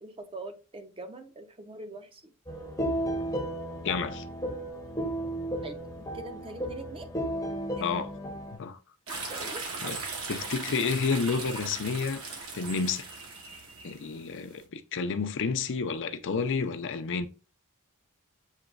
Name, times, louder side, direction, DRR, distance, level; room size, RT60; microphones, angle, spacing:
voice 1, 0.0-2.3 5.6-5.8 6.1-7.1 9.1-9.7, right 2 dB, 25° right, 0.6 m, -43 dB
sound 1, 2.5-8.6, right 1 dB, 15° left, 0.7 m, -34 dB
voice 2, 3.8-4.2 7.8-8.1 8.5-8.8 9.8-10.0 10.3-12.2 12.5-13.0 13.8-17.3, left 5 dB, 55° left, 0.5 m, -30 dB
sound 2, 9.1-14.6, right 3 dB, 65° right, 1.2 m, -38 dB
7.3 x 3.0 x 2.3 m
head